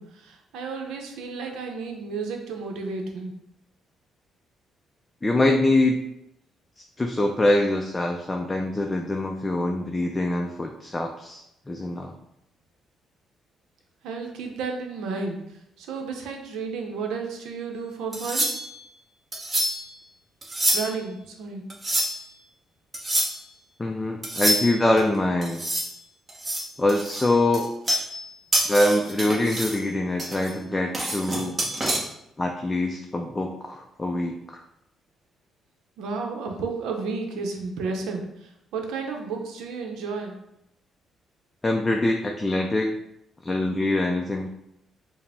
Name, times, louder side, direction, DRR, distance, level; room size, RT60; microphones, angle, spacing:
voice 1, 0.0-3.3 14.0-18.5 20.7-21.6 36.0-40.4, right 4 dB, 90° right, 3 dB, 0.6 m, -32 dB
voice 2, 5.2-6.0 6.8-12.1 23.8-25.6 26.8-27.7 28.7-31.6 32.4-34.6 41.6-43.0 43.4-44.5, left 1 dB, 20° left, 2 dB, 0.4 m, -24 dB
sound 1, 18.1-18.8 19.3-19.9 20.4-21.0 21.7-22.3 22.9-23.4 24.2-25.0 25.4-25.9 26.3-28.3 28.5-29.8 30.2-32.0, right 1 dB, 25° right, 0.9 m, -27 dB
4.7 x 2.0 x 3.4 m, 0.81 s
cardioid pair, 90°, 0 cm